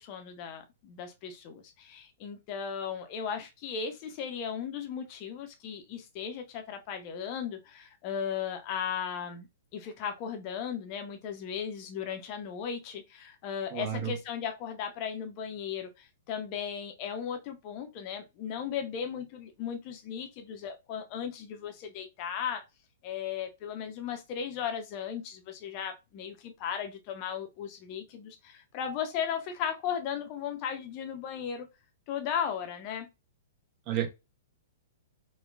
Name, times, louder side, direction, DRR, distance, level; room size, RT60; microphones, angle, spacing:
voice 1, 0.0-9.5 9.7-22.6 23.0-31.7 32.1-33.1, left 8 dB, 35° left, 0.6 m, -36 dB
voice 2, 13.7-14.1 33.9-34.1, right 10 dB, 35° right, 0.8 m, -31 dB
4.2 x 2.2 x 2.3 m
figure-of-eight pair, 110°, 0 cm